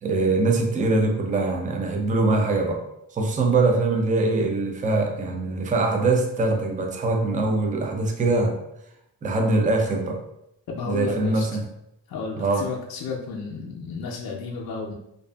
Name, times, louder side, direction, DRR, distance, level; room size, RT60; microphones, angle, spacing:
voice 1, 0.0-2.8 3.1-8.6 9.2-10.2 10.9-11.6 12.4-12.6, right 2 dB, 20° right, 2 dB, 0.3 m, -23 dB
voice 2, 10.7-11.5 12.1-14.9, left 4 dB, 55° left, -1 dB, 0.5 m, -32 dB
2.6 x 2.4 x 2.2 m, 0.80 s
wide cardioid pair, 100°, 44 cm